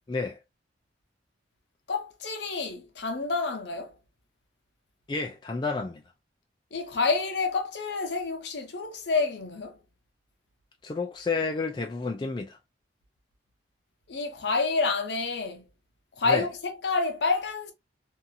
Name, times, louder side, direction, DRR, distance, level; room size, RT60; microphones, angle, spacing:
voice 1, 0.1-0.4 5.1-6.0 10.8-12.6 16.2-16.5, left 4 dB, 25° left, 0.3 m, -30 dB
voice 2, 1.9-4.0 6.7-9.8 14.1-15.7 16.2-17.7, left 4 dB, 65° left, 0.7 m, -28 dB
2.7 x 2.4 x 2.6 m
head